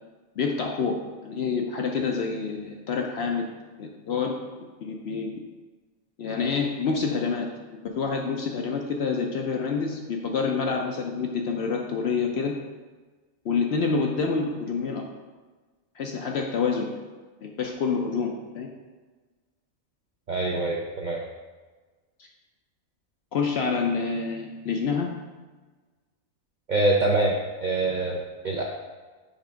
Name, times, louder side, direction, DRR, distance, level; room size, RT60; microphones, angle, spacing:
voice 1, 0.4-3.4 3.8-4.4 4.8-5.3 6.2-7.5 7.8-12.5 13.4-15.0 16.0-17.0 17.4-18.7 22.2-22.3 23.3-25.1, left 5 dB, 60° left, 2 dB, 0.7 m, -27 dB
voice 2, 20.3-21.2 26.7-27.4 27.6-28.6, right 2 dB, 60° right, -1 dB, 0.5 m, -24 dB
5.5 x 3.4 x 5.0 m, 1.3 s
omnidirectional pair, 1.5 m